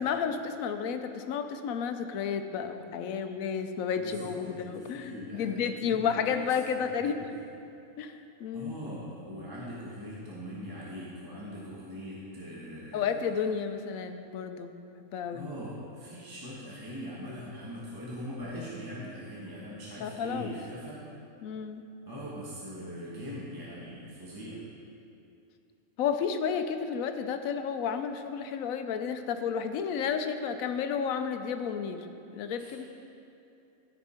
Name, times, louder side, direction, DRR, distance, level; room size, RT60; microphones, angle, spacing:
voice 1, 0.0-7.3 8.0-8.7 12.9-14.7 15.0-15.5 20.0-20.5 21.4-21.9 26.0-32.0 32.3-32.9, left 7 dB, 75° left, 8 dB, 1.0 m, -32 dB
voice 2, 3.9-7.4 8.5-13.2 15.3-21.0 22.0-24.6 32.6-32.8, equal, 15° right, -7 dB, 1.2 m, -41 dB
13.5 x 5.3 x 4.3 m, 2.7 s
omnidirectional pair, 1.5 m